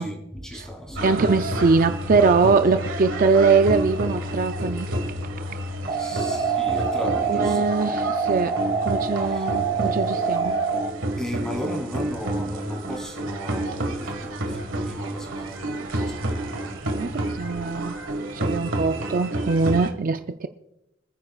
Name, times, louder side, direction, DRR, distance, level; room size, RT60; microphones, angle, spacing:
voice 1, 0.0-1.3 6.0-7.7 9.2-9.5 9.9-10.2 11.2-16.8, equal, 5° left, 0 dB, 3.4 m, -35 dB
sound 1, 0.9-5.9, left 4 dB, 80° left, 4.0 m, -34 dB
voice 2, 1.0-4.9 5.9-6.1 7.3-8.5 8.8-10.6 16.9-18.0 18.3-20.5, right 4 dB, 45° right, 8 dB, 0.5 m, -22 dB
sound 2, 1.0-19.9, right 1 dB, 80° right, 1.6 m, -30 dB
sound 3, 5.9-10.9, right 5 dB, 30° right, 1.2 m, -25 dB
26.5 x 9.8 x 2.4 m, 0.88 s
head